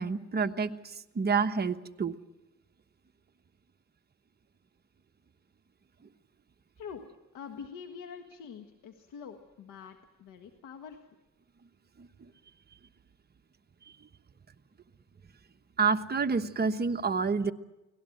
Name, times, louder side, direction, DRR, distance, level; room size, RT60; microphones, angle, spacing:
voice 1, 0.0-2.1 12.0-12.1 15.8-17.5, right 5 dB, 30° right, 7 dB, 1.2 m, -28 dB
voice 2, 7.3-11.0, left 6 dB, 85° left, 5 dB, 1.6 m, -45 dB
24.0 x 18.0 x 7.9 m, 1.0 s
cardioid pair, 90°, 30 cm